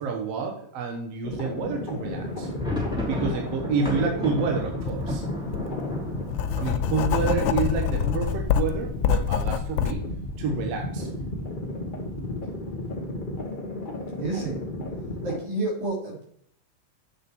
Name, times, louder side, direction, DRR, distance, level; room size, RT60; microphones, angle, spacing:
voice 1, 0.0-2.5 3.1-5.2 6.6-10.0 10.4-11.1, right 5 dB, 60° right, 2 dB, 2.2 m, -29 dB
sound 1, 1.2-15.4, left 1 dB, 35° left, 0.7 m, -33 dB
sound 2, 2.2-10.0 10.3-10.4 10.6-10.9 11.4-11.9, left 2 dB, ahead, 3.1 m, -34 dB
Writing, 4.9-5.0 5.5-9.9, left 9 dB, 80° left, 1.5 m, -26 dB
voice 2, 14.2-14.6 15.2-16.3, right 2 dB, 80° right, -3 dB, 4.8 m, -29 dB
8.1 x 6.5 x 4.4 m, 0.65 s
omnidirectional pair, 3.4 m